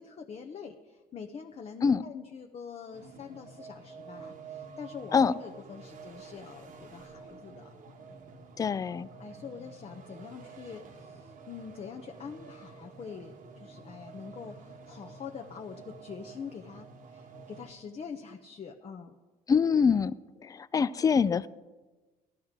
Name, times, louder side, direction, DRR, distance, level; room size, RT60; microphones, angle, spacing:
voice 1, 0.0-7.7 9.2-19.2, left 6 dB, 35° left, 3 dB, 0.8 m, -45 dB
sound 1, 2.9-17.7, right 4 dB, 55° right, 1.2 m, -49 dB
voice 2, 8.6-9.1 19.5-20.1 20.4-21.5, left 6 dB, 20° left, 17 dB, 0.3 m, -24 dB
15.0 x 12.0 x 3.7 m, 1.2 s
cardioid pair, 110°, 17 cm